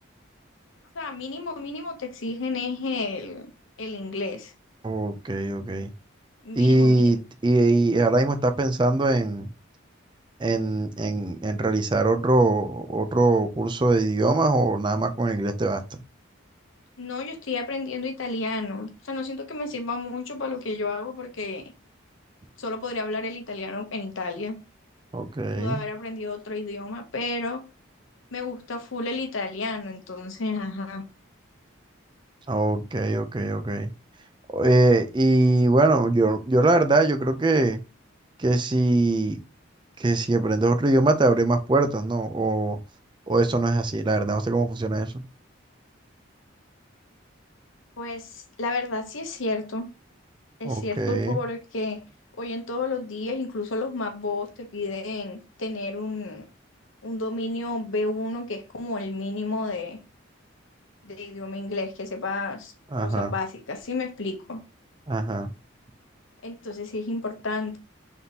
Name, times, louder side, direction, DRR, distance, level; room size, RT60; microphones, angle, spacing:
voice 1, 0.9-3.5 3.8-4.5 6.4-7.2 17.0-21.7 22.6-24.6 25.5-27.6 28.3-31.0 48.0-49.9 50.6-52.0 52.4-56.4 57.0-60.0 61.0-62.7 63.0-64.6 66.4-67.8, left 3 dB, 75° left, 0.9 m, -31 dB
voice 2, 4.8-5.9 6.6-9.5 10.4-16.0 25.1-25.8 32.5-33.9 34.5-37.8 38.4-39.4 40.0-42.8 43.3-45.2 50.6-51.4 62.9-63.3 65.1-65.5, right 2 dB, 25° right, 0.4 m, -22 dB
4.1 x 3.5 x 2.8 m
head